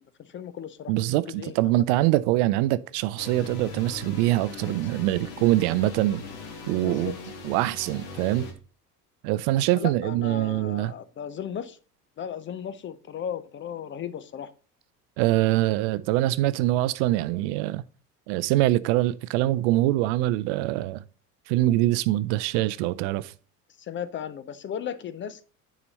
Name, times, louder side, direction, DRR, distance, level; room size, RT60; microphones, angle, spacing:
voice 1, 0.0-0.9 1.3-1.8 6.8-7.2 9.7-11.8 12.2-14.5 23.8-25.5, left 8 dB, 25° left, 0.6 m, -36 dB
voice 2, 0.9-6.2 6.7-7.1 7.4-8.5 9.2-10.9 15.2-17.8 18.3-21.0 21.5-23.3, right 16 dB, 50° right, 0.5 m, -24 dB
sound 1, 3.2-8.5, left 4 dB, 55° left, 1.9 m, -40 dB
9.5 x 5.0 x 4.1 m
figure-of-eight pair, 65°, 47 cm